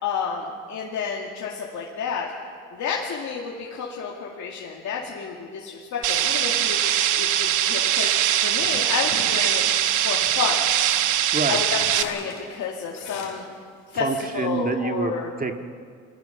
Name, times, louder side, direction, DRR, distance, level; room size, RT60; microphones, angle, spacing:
voice 1, 0.0-2.3 2.7-10.6 11.5-13.4 13.9-15.3, left 6 dB, 70° left, -2 dB, 2.2 m, -30 dB
sound 1, 6.0-6.9 7.3-7.9 8.6-13.6, left 6 dB, 90° left, 3.4 m, -42 dB
sound 2, 6.0-12.0, right 11 dB, 90° right, 1.1 m, -22 dB
voice 2, 11.1-11.6 14.0-15.1 15.4-15.5, right 4 dB, 30° right, 5 dB, 1.8 m, -26 dB
29.0 x 20.0 x 5.8 m, 2.2 s
cardioid pair, 90°, 30 cm